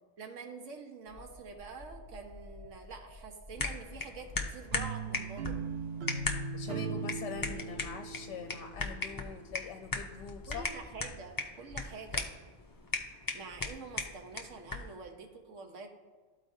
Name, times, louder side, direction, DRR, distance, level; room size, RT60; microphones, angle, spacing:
voice 1, 0.2-5.6 10.5-12.3 13.3-15.9, right 4 dB, 85° right, 4 dB, 1.3 m, -46 dB
sound 1, 1.1-8.5 8.9-9.1, left 1 dB, 35° right, 1.2 m, -54 dB
sound 2, 3.6-15.0, left 3 dB, 35° left, 0.3 m, -38 dB
sound 3, 4.7-9.8, right 5 dB, 65° right, 0.7 m, -39 dB
voice 2, 6.5-10.6, left 6 dB, 70° left, 5 dB, 0.8 m, -43 dB
13.0 x 4.4 x 2.7 m, 1.4 s
omnidirectional pair, 1.2 m